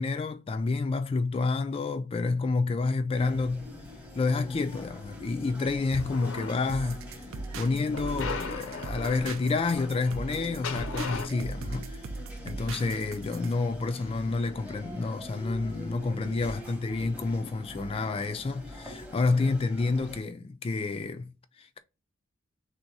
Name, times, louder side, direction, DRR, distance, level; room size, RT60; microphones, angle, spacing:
voice 1, 0.0-3.7 4.1-7.0 7.6-12.0 12.5-21.8, left 3 dB, 30° left, 0.3 m, -29 dB
sound 1, 3.1-20.2, left 1 dB, 5° right, 0.8 m, -44 dB
sound 2, 5.7-7.0 7.9-11.3, left 4 dB, 80° left, 0.5 m, -39 dB
sound 3, 6.7-13.5, right 3 dB, 75° right, 0.5 m, -39 dB
3.4 x 2.7 x 4.5 m
head